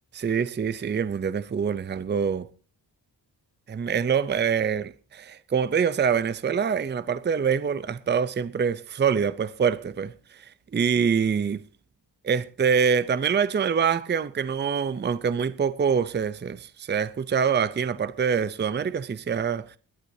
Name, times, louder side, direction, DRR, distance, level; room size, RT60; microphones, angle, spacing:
voice 1, 0.1-2.5 3.7-11.6 12.2-19.8, right 6 dB, 25° right, 0.6 m, -25 dB
21.0 x 11.5 x 2.8 m
wide cardioid pair, 110°, 41 cm